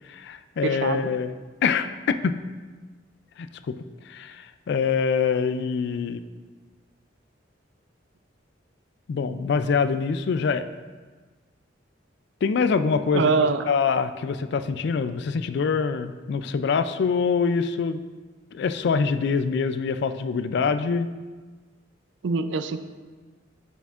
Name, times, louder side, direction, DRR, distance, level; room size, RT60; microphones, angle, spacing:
voice 1, 0.1-1.3 1.6-2.4 3.4-3.8 4.1-6.2 9.1-10.7 12.4-18.0 18.5-21.1, left 5 dB, 60° left, 11 dB, 0.3 m, -25 dB
voice 2, 0.6-1.1 13.1-13.7 22.2-22.8, right 4 dB, 70° right, 10 dB, 0.4 m, -24 dB
8.4 x 7.0 x 2.5 m, 1.4 s
head